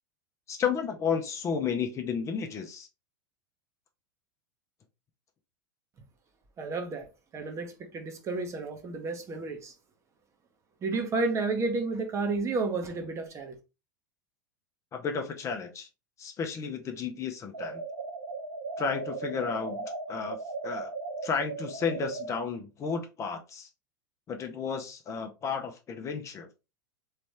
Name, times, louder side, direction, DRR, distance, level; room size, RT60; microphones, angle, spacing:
voice 1, 0.5-2.9 14.9-15.9 16.2-17.8 18.8-20.4 20.6-20.9 21.2-23.7 24.3-26.5, left 6 dB, 25° left, 0.8 m, -32 dB
voice 2, 6.6-7.1 7.3-9.7 10.8-13.6, right 3 dB, 25° right, 1.1 m, -31 dB
sound 1, 17.5-22.4, right 3 dB, 80° right, 0.9 m, -37 dB
4.0 x 3.3 x 3.3 m
figure-of-eight pair, 85°, 11 cm